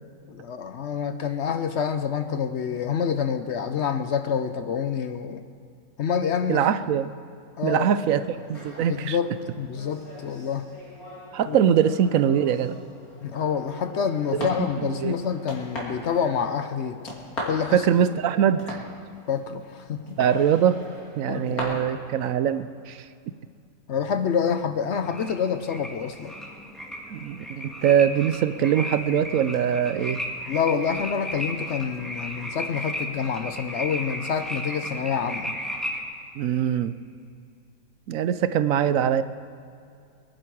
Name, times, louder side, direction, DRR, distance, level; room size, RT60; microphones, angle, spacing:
voice 1, 0.3-5.4 6.0-6.7 7.6-7.9 8.9-10.7 11.5-11.6 13.2-17.0 17.4-17.9 19.3-20.2 21.3-21.8 23.9-26.4 30.5-35.6, left 7 dB, 60° left, 9 dB, 0.9 m, -27 dB
voice 2, 6.5-7.1 7.6-9.2 11.3-12.8 15.0-15.1 17.7-18.8 20.2-20.8 21.2-23.1 27.1-30.2 36.4-36.9 38.1-39.2, right 9 dB, 75° right, 13 dB, 1.0 m, -22 dB
sound 1, 8.0-21.6, left 1 dB, 85° left, 3.4 m, -40 dB
sound 2, 25.0-36.0, equal, ahead, 1.7 m, -35 dB
22.5 x 11.0 x 4.7 m, 2.4 s
omnidirectional pair, 1.5 m